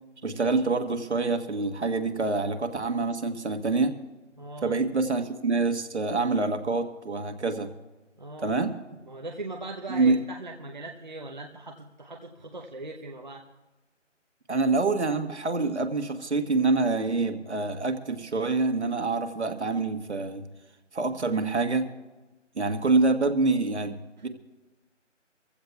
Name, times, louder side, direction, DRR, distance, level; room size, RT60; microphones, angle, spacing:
voice 1, 0.2-4.0 4.6-7.7 8.4-8.7 9.9-10.2 14.5-20.4 20.9-21.9 22.5-24.0 24.2-24.3, right 3 dB, 60° right, 6 dB, 1.5 m, -26 dB
voice 2, 4.4-4.8 8.2-8.6 9.0-13.4 24.2-24.3, right 2 dB, 40° right, 1 dB, 0.8 m, -40 dB
24.5 x 15.5 x 2.3 m, 1.1 s
figure-of-eight pair, 175°, 37 cm